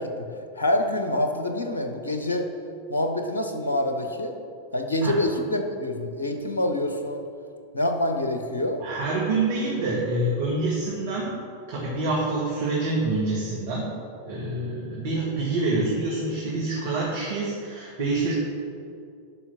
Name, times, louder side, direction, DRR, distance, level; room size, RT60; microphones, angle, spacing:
voice 1, 0.0-2.5 2.9-4.3 4.7-7.2 7.7-8.8, left 1 dB, 75° left, 5 dB, 0.9 m, -26 dB
voice 2, 8.8-11.3 11.7-13.9 14.3-18.3, right 2 dB, 55° right, -5 dB, 1.7 m, -26 dB
11.0 x 4.8 x 6.0 m, 2.5 s
figure-of-eight pair, 90°, 0 cm